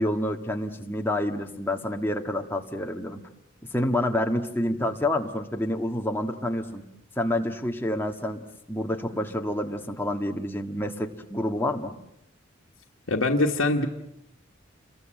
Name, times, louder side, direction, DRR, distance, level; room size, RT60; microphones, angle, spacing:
voice 1, 0.0-3.2 3.7-6.9 7.2-8.4 8.7-11.9, left 1 dB, 10° left, 3 dB, 1.6 m, -28 dB
voice 2, 13.1-13.9, left 2 dB, 80° left, 0 dB, 1.4 m, -23 dB
28.5 x 22.5 x 7.7 m, 0.81 s
head